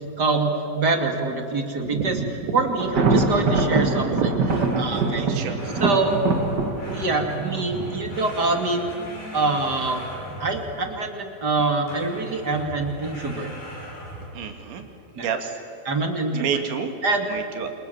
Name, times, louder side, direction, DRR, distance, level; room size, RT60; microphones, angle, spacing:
voice 1, 0.2-2.2 2.5-4.1 4.8-6.2 6.9-8.9 9.3-10.1 10.4-13.5 15.1-15.3 15.8-16.6 17.0-17.3, right 3 dB, 30° right, 3 dB, 2.5 m, -25 dB
voice 2, 1.9-2.6 4.1-4.4 5.2-5.6 14.3-14.9 15.1-15.4 16.3-16.9 17.3-17.7, right 6 dB, 85° right, 5 dB, 4.5 m, -28 dB
Thunder, 2.8-8.6, right 3 dB, 60° right, 1.0 m, -24 dB
sound 1, 4.5-10.9 11.9-14.5, right 1 dB, 55° left, 9.1 m, -36 dB
29.0 x 28.5 x 7.2 m, 2.8 s
omnidirectional pair, 5.0 m